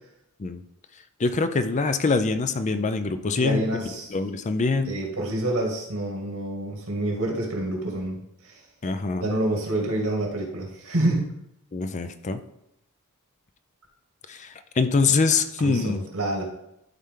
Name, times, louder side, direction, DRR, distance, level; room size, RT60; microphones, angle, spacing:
voice 1, 1.2-3.6 4.1-4.9 8.8-9.3 11.7-12.4 14.3-16.0, left 4 dB, 35° left, 10 dB, 0.5 m, -24 dB
voice 2, 3.3-4.1 4.8-8.6 9.2-11.3 15.6-16.4, right 1 dB, 75° right, -1 dB, 2.2 m, -27 dB
12.0 x 4.3 x 3.7 m, 0.82 s
head